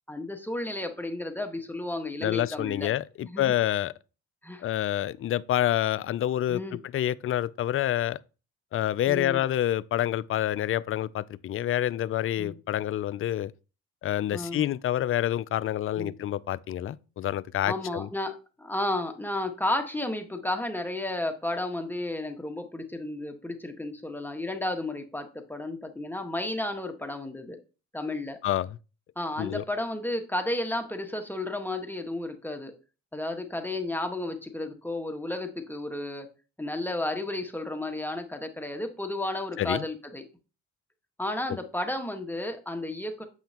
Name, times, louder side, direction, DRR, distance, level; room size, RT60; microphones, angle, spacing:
voice 1, 0.1-2.9 3.2-3.5 4.4-4.7 6.5-6.8 9.1-9.4 12.4-12.6 14.3-14.7 16.0-16.1 17.6-27.6 27.9-28.4 29.1-32.7 33.1-36.3 36.6-40.2 41.2-43.2, left 1 dB, 5° left, 1.5 m, -32 dB
voice 2, 2.2-3.9 4.6-8.2 8.7-13.5 14.0-18.1 28.4-28.7 29.4-29.6 39.6-39.9, left 12 dB, 45° left, 0.4 m, -28 dB
7.8 x 5.7 x 2.9 m
supercardioid pair, 65°, 31 cm